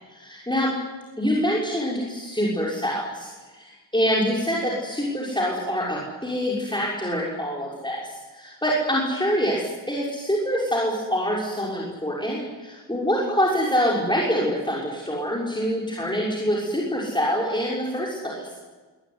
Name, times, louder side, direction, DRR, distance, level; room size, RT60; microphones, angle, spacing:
voice 1, 0.1-0.7 1.2-18.5, equal, 10° left, -5 dB, 6.0 m, -25 dB
25.5 x 21.5 x 9.9 m, 1.3 s
wide cardioid pair, 100°, 44 cm